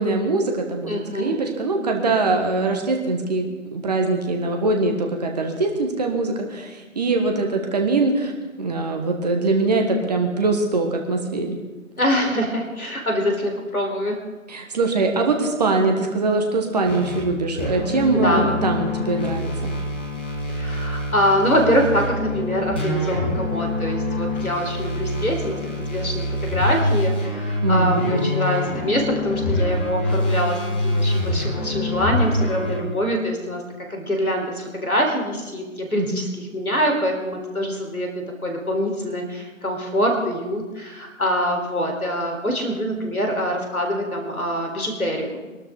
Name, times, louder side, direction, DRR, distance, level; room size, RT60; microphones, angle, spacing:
voice 1, 0.0-8.3 8.6-11.6 14.5-19.7 27.6-28.4 35.9-36.2, right 3 dB, 30° right, 3 dB, 1.6 m, -22 dB
voice 2, 0.9-1.4 12.0-14.2 18.2-18.5 20.5-25.6 25.9-30.6 30.8-33.6 33.9-45.5, equal, 90° left, 2 dB, 4.1 m, -24 dB
sound 1, 16.8-17.3 17.6-32.8, left 1 dB, 10° left, 0.9 m, -25 dB
23.5 x 12.5 x 3.8 m, 1.2 s
figure-of-eight pair, 150°, 42 cm